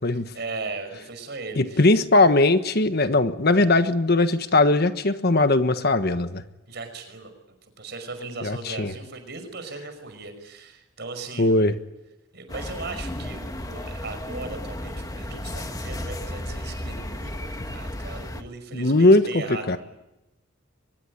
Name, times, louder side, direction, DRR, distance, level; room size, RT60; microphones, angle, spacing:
voice 1, 0.1-1.9 6.7-7.4 7.8-11.6 12.3-19.8, right 3 dB, 55° right, 8 dB, 5.6 m, -37 dB
voice 2, 1.6-6.4 8.4-8.9 11.4-11.7 18.7-19.8, left 2 dB, 50° left, 10 dB, 1.4 m, -19 dB
sound 1, 12.5-18.4, left 1 dB, 20° left, 1.6 m, -34 dB
24.0 x 20.5 x 9.8 m, 0.95 s
head